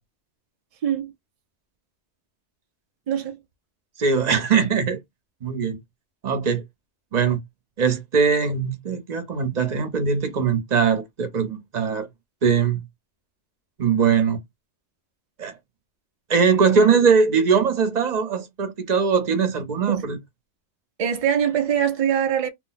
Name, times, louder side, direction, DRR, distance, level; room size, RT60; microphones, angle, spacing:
voice 1, 3.1-3.4 19.9-20.1 21.0-22.5, right 8 dB, 80° right, 0.3 m, -23 dB
voice 2, 4.0-5.0 5.4-5.8 6.2-6.6 7.1-7.4 7.8-12.1 12.4-12.8 13.8-14.4 15.4-15.5 16.3-20.2, right 6 dB, 45° right, 0.7 m, -21 dB
2.4 x 2.0 x 3.9 m
omnidirectional pair, 1.2 m